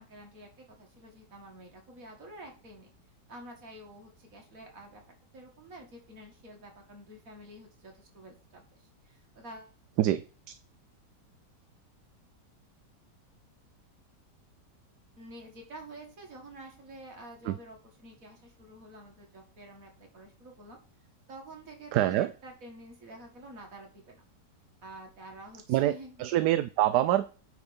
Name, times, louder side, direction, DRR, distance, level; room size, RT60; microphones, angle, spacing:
voice 1, 0.0-2.9 3.3-5.0 5.3-9.8 15.2-20.8 21.3-24.2 24.8-26.2, right 1 dB, 50° right, 2.4 m, -49 dB
voice 2, 21.9-22.3 25.7-27.3, right 13 dB, 75° right, 1.1 m, -25 dB
9.4 x 3.8 x 5.2 m
omnidirectional pair, 1.8 m